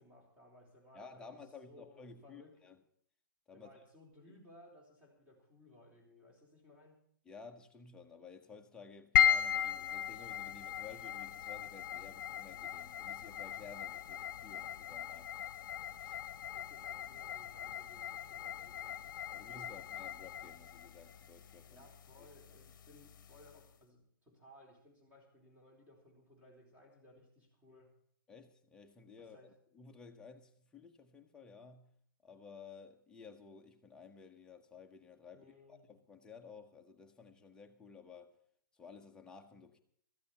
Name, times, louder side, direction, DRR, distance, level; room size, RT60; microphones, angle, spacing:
voice 1, 0.0-2.5 3.5-7.0 16.2-19.6 21.7-27.9 29.2-29.5 35.3-35.9, left 1 dB, 10° right, 4.0 m, -61 dB
voice 2, 0.9-2.8 3.5-3.7 7.2-15.3 16.0-16.2 19.3-21.9 28.3-29.4 29.7-31.9 32.2-38.3 38.8-39.8, left 5 dB, 5° left, 1.0 m, -54 dB
sound 1, 9.1-23.6, left 10 dB, 60° left, 0.9 m, -37 dB
14.0 x 8.4 x 8.0 m
hypercardioid pair, 145°, 11 cm